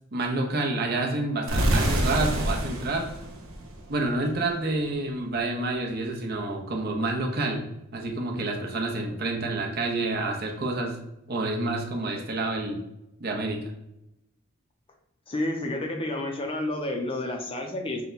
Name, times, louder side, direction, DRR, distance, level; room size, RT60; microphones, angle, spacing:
voice 1, 0.1-3.0 3.9-7.6 7.9-11.0 11.3-12.8 13.2-13.6, right 2 dB, 50° right, 1 dB, 0.7 m, -28 dB
sound 1, 1.5-4.3, right 1 dB, 75° right, 0.9 m, -27 dB
voice 2, 15.3-18.0, left 1 dB, 25° left, 2 dB, 0.6 m, -30 dB
5.7 x 2.2 x 3.9 m, 0.86 s
head